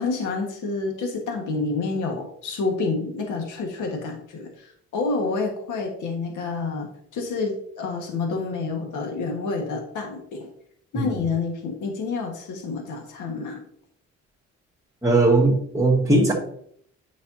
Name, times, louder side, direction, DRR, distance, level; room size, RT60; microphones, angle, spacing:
voice 1, 0.0-6.9 7.1-10.5 10.9-13.6, left 4 dB, 80° left, 2 dB, 1.6 m, -28 dB
voice 2, 15.0-16.3, right 2 dB, 10° right, -8 dB, 1.8 m, -18 dB
8.5 x 5.8 x 2.8 m, 0.65 s
cardioid pair, 90°, 30 cm